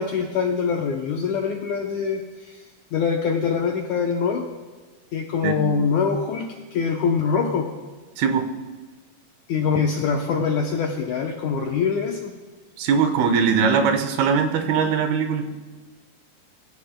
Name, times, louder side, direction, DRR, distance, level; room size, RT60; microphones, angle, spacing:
voice 1, 0.0-2.6 2.9-4.5 5.1-7.7 9.5-12.3, left 5 dB, 75° left, 1 dB, 1.7 m, -24 dB
voice 2, 8.2-8.5 12.8-15.6, right 6 dB, 85° right, 7 dB, 2.8 m, -21 dB
22.5 x 15.0 x 2.2 m, 1.3 s
omnidirectional pair, 4.4 m